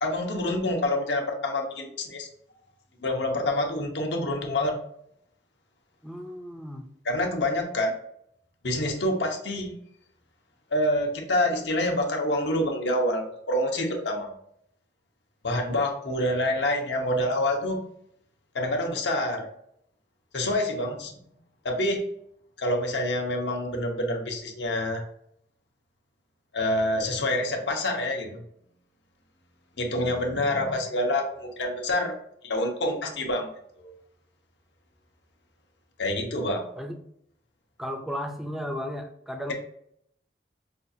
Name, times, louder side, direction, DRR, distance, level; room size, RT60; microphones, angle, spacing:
voice 1, 0.0-2.3 3.0-4.8 7.0-7.9 8.6-9.8 10.7-14.4 15.4-17.8 18.5-19.5 20.3-21.2 21.6-22.1 22.6-25.0 26.5-28.4 29.8-32.2 32.4-33.5 33.8-33.9 36.0-36.6, left 1 dB, 85° left, 2 dB, 0.9 m, -27 dB
voice 2, 6.0-6.8 36.8-36.9 37.8-39.5, equal, ahead, 3 dB, 0.4 m, -34 dB
5.4 x 2.4 x 2.7 m, 0.71 s
head